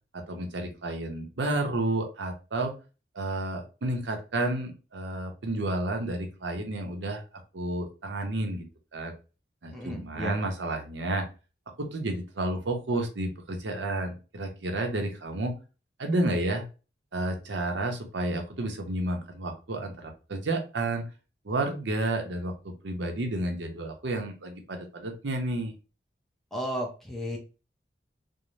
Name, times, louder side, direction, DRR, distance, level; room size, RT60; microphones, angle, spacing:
voice 1, 0.1-2.7 3.1-7.2 7.5-8.6 8.9-9.1 9.6-11.3 11.8-15.5 16.0-16.6 17.1-21.1 21.4-25.7, right 2 dB, 85° right, 4 dB, 0.6 m, -31 dB
voice 2, 9.7-10.4 26.5-27.4, equal, ahead, -2 dB, 0.5 m, -34 dB
2.6 x 2.0 x 3.0 m, 0.33 s
head